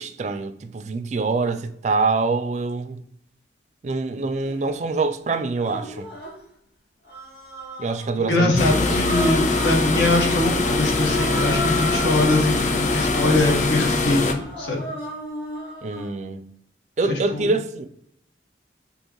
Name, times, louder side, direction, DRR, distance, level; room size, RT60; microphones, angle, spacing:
voice 1, 0.0-3.0 3.8-6.1 7.8-9.0 15.8-16.5 17.0-17.9, right 3 dB, 40° right, 0.3 m, -25 dB
Human voice, 4.4-4.6 5.5-6.4 7.1-8.1 8.9-10.0 10.9-16.1, equal, 60° left, 1.6 m, -34 dB
voice 2, 8.2-14.2 14.6-14.8 17.0-17.5, left 2 dB, 75° left, 1.2 m, -22 dB
sound 1, 8.6-14.3, left 3 dB, 40° left, 0.4 m, -22 dB
6.3 x 2.9 x 3.0 m
head